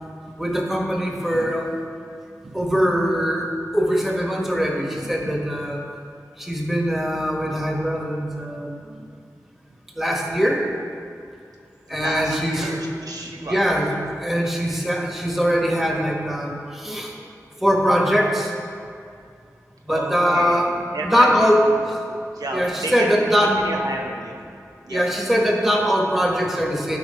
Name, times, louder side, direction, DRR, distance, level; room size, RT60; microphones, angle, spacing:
voice 1, 0.4-1.7 2.5-5.8 6.4-9.1 9.9-10.7 11.9-12.8 13.3-13.9 14.2-17.1 17.6-18.5 19.8-21.7 22.1-22.2 22.5-23.6 24.9-27.0, equal, 5° right, -1 dB, 1.5 m, -22 dB
voice 2, 5.0-5.3 11.9-13.6 19.9-21.5 22.3-24.4 24.8-25.0, right 1 dB, 75° right, 0 dB, 0.9 m, -31 dB
12.0 x 4.7 x 4.4 m, 2.4 s
cardioid pair, 45°, 6 cm